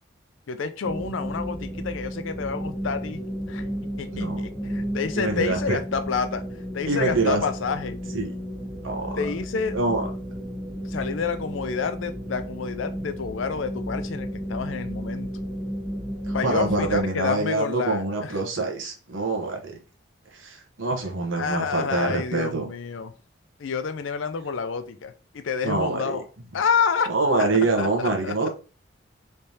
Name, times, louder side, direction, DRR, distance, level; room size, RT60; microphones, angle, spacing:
voice 1, 0.5-3.6 4.0-6.4 6.7-8.0 9.2-9.8 10.9-15.3 16.3-18.3 21.4-23.1 23.6-26.2 26.5-27.1 27.4-27.5 27.8-28.5, left 5 dB, 85° left, 0.5 m, -29 dB
sound 1, 0.8-17.0, equal, 10° left, 0.9 m, -33 dB
voice 2, 4.1-4.4 5.1-5.8 6.9-7.4 8.1-8.3 8.8-9.2 9.7-10.1 16.3-19.8 20.3-22.7 25.6-26.2 27.1-28.5, right 3 dB, 85° right, 1.0 m, -25 dB
3.3 x 3.3 x 2.8 m
head